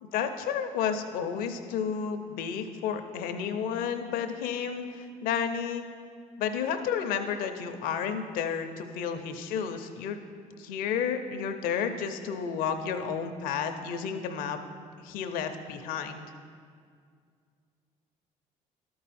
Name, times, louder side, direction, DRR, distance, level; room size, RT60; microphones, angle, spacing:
voice 1, 0.0-5.8 6.4-10.2 10.6-14.6 15.0-16.3, left 7 dB, 80° left, 7 dB, 0.6 m, -31 dB
12.5 x 4.7 x 4.2 m, 2.1 s
supercardioid pair, 70°, 15 cm